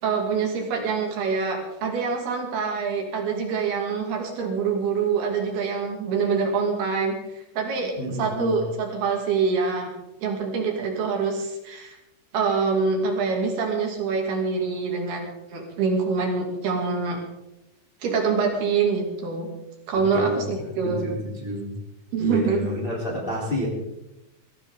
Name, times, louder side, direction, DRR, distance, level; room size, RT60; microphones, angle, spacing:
voice 1, 0.0-7.2 7.6-7.9 8.2-9.9 10.2-12.0 12.3-17.2 18.0-19.5 19.9-21.0 22.1-22.6, right 5 dB, 65° right, 1 dB, 4.4 m, -25 dB
voice 2, 8.0-8.6 20.1-21.7 22.2-23.7, equal, 15° left, -2 dB, 3.1 m, -29 dB
22.0 x 15.5 x 3.7 m, 0.92 s
omnidirectional pair, 4.9 m